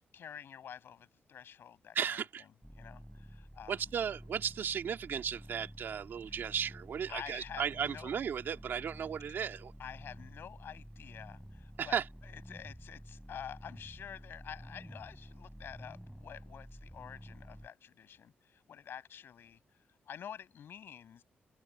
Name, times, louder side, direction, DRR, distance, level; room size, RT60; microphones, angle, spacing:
voice 1, 0.1-2.5 2.7-3.8 7.1-8.2 9.8-19.6 20.1-21.2, left 8 dB, 65° left, 7.6 m, -48 dB
voice 2, 1.9-2.4 3.7-9.7 11.8-12.0, right 7 dB, 60° right, 2.5 m, -35 dB
sound 1, 2.6-17.7, equal, ahead, 6.5 m, -51 dB
open air
wide cardioid pair, 155°, 4 cm